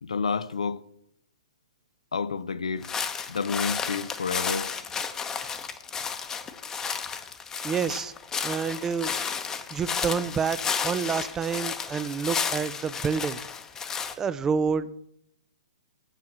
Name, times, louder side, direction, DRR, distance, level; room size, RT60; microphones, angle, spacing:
voice 1, 0.0-0.8 2.1-2.9 3.3-4.7, left 5 dB, 90° left, 0.6 m, -29 dB
sound 1, 2.8-14.1, left 6 dB, 15° left, 0.8 m, -32 dB
voice 2, 7.6-8.1 8.4-9.1 9.7-10.6 10.8-13.4 14.2-14.9, right 6 dB, 15° right, 0.4 m, -28 dB
9.1 x 6.0 x 7.1 m
hypercardioid pair, 140°, 3 cm